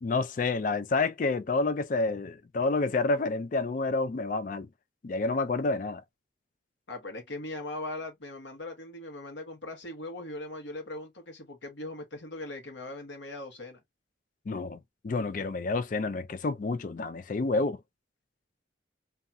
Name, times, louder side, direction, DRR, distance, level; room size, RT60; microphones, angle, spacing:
voice 1, 0.0-4.7 5.0-6.0 14.5-17.8, left 3 dB, 40° left, 0.4 m, -29 dB
voice 2, 6.9-13.8, left 2 dB, 70° left, 1.1 m, -40 dB
2.6 x 2.3 x 2.6 m
head